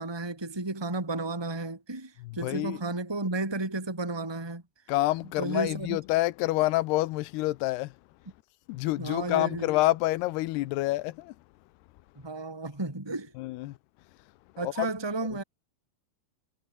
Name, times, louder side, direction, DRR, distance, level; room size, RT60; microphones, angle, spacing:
voice 1, 0.0-4.6 5.4-6.0 9.0-9.7 12.2-13.3 14.6-15.4, right 2 dB, 5° right, 2.9 m, -33 dB
voice 2, 2.2-2.8 4.9-7.9 8.7-11.3 13.4-13.7 14.6-14.9, left 18 dB, 85° left, 2.8 m, -27 dB
omnidirectional pair, 4.6 m